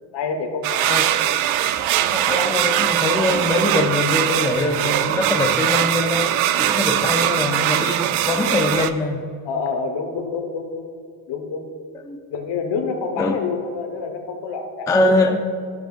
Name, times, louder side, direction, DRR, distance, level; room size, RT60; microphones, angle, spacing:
voice 1, 0.1-1.0 9.4-10.9 11.3-11.6 12.3-15.4, left 4 dB, 60° left, 4 dB, 1.3 m, -27 dB
sound 1, 0.6-8.9, right 12 dB, 90° right, 0.5 m, -21 dB
voice 2, 2.1-9.2 12.0-12.2 13.2-13.4 14.9-15.4, left 2 dB, 10° left, 3 dB, 0.4 m, -22 dB
11.5 x 7.1 x 2.5 m, 2.1 s
cardioid pair, 125°, 46 cm